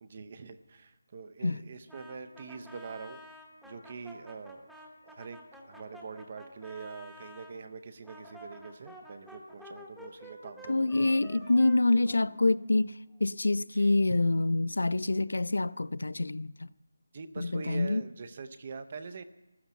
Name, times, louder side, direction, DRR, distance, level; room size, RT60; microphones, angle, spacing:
voice 1, 0.0-3.2 3.6-4.7 5.0-5.4 5.6-10.9 13.7-13.9 17.1-19.2, right 5 dB, 25° right, 0.6 m, -44 dB
Brass instrument, 1.9-7.5 8.0-12.8, equal, ahead, 1.0 m, -50 dB
voice 2, 10.7-12.9 13.2-16.7 17.4-18.0, left 2 dB, 85° left, 0.4 m, -26 dB
14.5 x 12.5 x 7.1 m
figure-of-eight pair, 180°, 0 cm